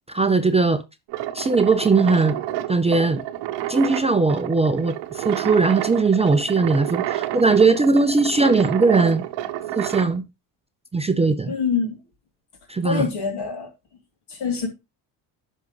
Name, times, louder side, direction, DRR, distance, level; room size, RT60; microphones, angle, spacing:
voice 1, 0.1-0.8 1.3-2.4 2.7-3.2 3.7-9.2 9.8-10.2 10.9-11.6 12.7-13.1, right 4 dB, 15° right, 0.6 m, -19 dB
sound 1, 1.1-10.2, right 13 dB, 75° right, 0.9 m, -29 dB
voice 2, 11.5-12.0 12.8-13.7 14.3-14.7, left 6 dB, 60° left, 2.9 m, -25 dB
10.5 x 5.4 x 3.1 m
supercardioid pair, 75°, 44 cm